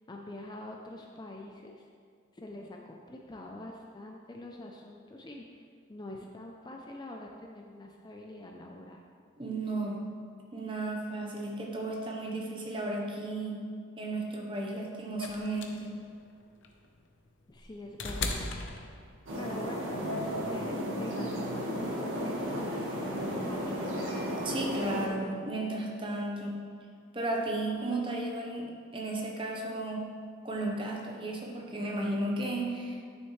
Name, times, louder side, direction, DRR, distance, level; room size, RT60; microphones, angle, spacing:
voice 1, 0.1-1.9 2.3-5.6 5.9-9.0 17.5-18.5 19.4-23.9, left 1 dB, 20° left, 1 dB, 0.4 m, -45 dB
voice 2, 9.4-10.1 10.5-13.7 14.0-16.0 24.4-26.6 27.1-30.2 30.4-33.1, right 2 dB, 25° right, -1 dB, 0.9 m, -34 dB
sound 1, 15.2-19.5 20.7-20.8, left 3 dB, 70° left, 0.7 m, -38 dB
sound 2, 19.3-25.1, equal, 85° right, 1.6 m, -34 dB
9.7 x 6.5 x 3.2 m, 2.1 s
head